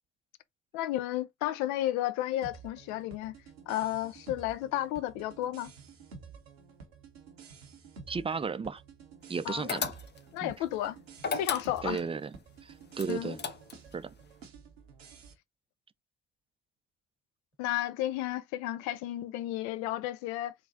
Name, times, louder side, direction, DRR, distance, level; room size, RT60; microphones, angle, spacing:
voice 1, 0.7-3.3 3.7-5.7 9.5-9.8 10.3-11.0 11.3-12.0 13.1-13.3 17.6-20.5, left 13 dB, 70° left, 0.5 m, -32 dB
sound 1, 2.4-15.3, right 5 dB, 90° right, 0.7 m, -51 dB
voice 2, 8.1-8.8 9.3-9.9 10.4-10.5 11.8-12.3 12.6-13.4 13.9-14.1, right 5 dB, 20° right, 0.4 m, -34 dB
sound 2, 9.7-10.4 11.2-12.1 13.0-13.9, left 5 dB, 35° left, 0.7 m, -34 dB
3.8 x 2.4 x 3.9 m
figure-of-eight pair, 40°, 30 cm